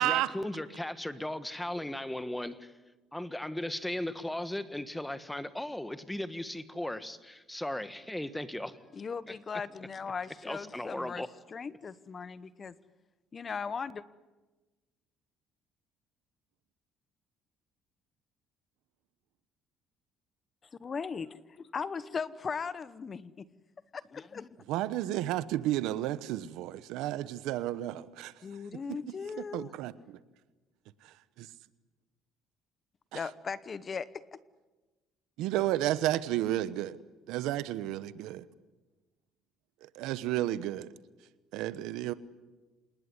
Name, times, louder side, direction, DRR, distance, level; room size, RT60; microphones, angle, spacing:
voice 1, 0.0-2.7 3.1-8.8 10.4-11.3, left 1 dB, 5° left, 1.5 m, -37 dB
voice 2, 8.9-11.2 11.5-12.7 13.3-14.0 20.7-21.3 21.7-23.5 23.9-24.5 28.4-29.7 33.1-34.4, left 5 dB, 35° left, 1.0 m, -38 dB
voice 3, 24.7-28.3 28.9-29.0 29.5-30.2 31.0-31.5 33.1-33.2 35.4-37.0 37.3-38.5 39.8-40.9 41.5-42.1, right 14 dB, 80° right, 1.1 m, -32 dB
27.5 x 20.0 x 9.9 m
cardioid pair, 110°, 0 cm